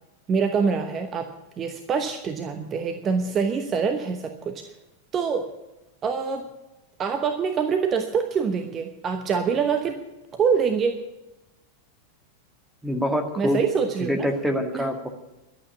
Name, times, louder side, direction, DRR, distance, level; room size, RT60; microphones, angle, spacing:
voice 1, 0.3-1.3 1.6-4.6 5.1-5.5 6.0-6.5 7.0-10.0 10.3-11.0 13.4-14.3 14.7-14.8, right 6 dB, 25° right, 6 dB, 1.0 m, -25 dB
voice 2, 12.8-13.6 14.0-15.1, equal, 5° right, 4 dB, 1.9 m, -25 dB
12.0 x 8.5 x 10.0 m, 1.0 s
figure-of-eight pair, 90°, 0 cm